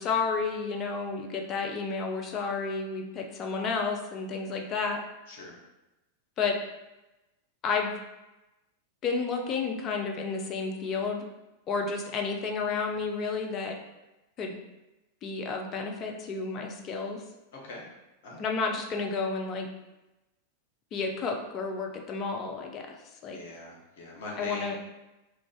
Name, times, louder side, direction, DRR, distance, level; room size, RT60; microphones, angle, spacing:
voice 1, 0.0-5.0 6.4-6.6 7.6-7.9 9.0-11.2 11.7-13.7 14.4-14.6 15.2-17.2 18.4-19.7 20.9-23.0 23.2-23.4 24.4-24.8, left 4 dB, 30° left, 2 dB, 0.5 m, -31 dB
voice 2, 5.3-5.6 17.5-17.8 18.2-18.4 23.3-24.8, left 1 dB, 55° left, -3 dB, 0.9 m, -41 dB
2.4 x 2.3 x 3.8 m, 1.0 s
figure-of-eight pair, 90°, 0 cm